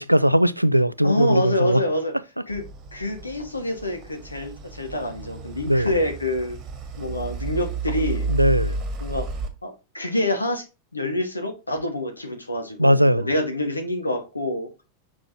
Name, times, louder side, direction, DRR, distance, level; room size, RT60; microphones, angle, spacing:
voice 1, 0.0-1.8 5.7-5.9 8.3-8.8 12.8-13.3, equal, 90° right, 0.4 m, -19 dB
voice 2, 1.0-2.1 2.5-2.6 2.9-6.6 7.0-8.3 9.0-9.3 9.6-10.6 10.9-14.7, left 1 dB, 80° left, 1.7 m, -26 dB
sound 1, 2.5-9.5, right 4 dB, 35° right, 2.0 m, -32 dB
7.4 x 6.0 x 2.9 m
figure-of-eight pair, 90°, 0 cm